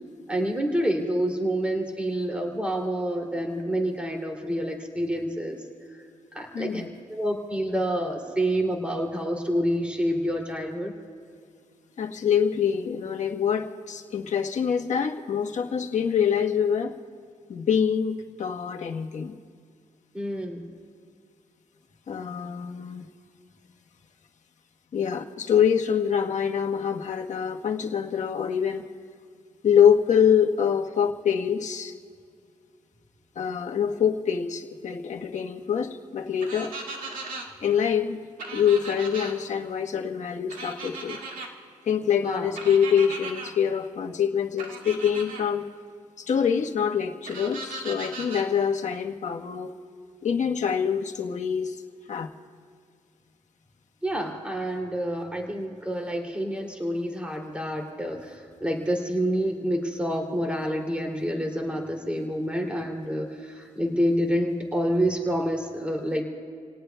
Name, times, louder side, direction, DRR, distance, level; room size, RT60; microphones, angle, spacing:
voice 1, 0.3-5.6 6.3-6.8 7.1-10.9 20.1-20.6 42.2-42.5 54.0-66.2, equal, 10° right, 1 dB, 2.8 m, -28 dB
voice 2, 6.5-6.9 12.0-17.0 17.5-19.4 22.1-23.1 24.9-28.8 29.6-31.9 33.3-36.7 37.6-38.2 38.5-41.2 41.9-45.6 46.2-49.7 50.2-51.7 52.1-52.3, left 7 dB, 60° left, 3 dB, 1.3 m, -25 dB
sound 1, 36.4-37.5 38.4-39.3 40.5-41.5 42.6-43.5 44.6-45.4 47.3-48.5, right 3 dB, 85° right, 2.1 m, -37 dB
29.5 x 18.0 x 2.3 m, 2.2 s
cardioid pair, 75°, 14 cm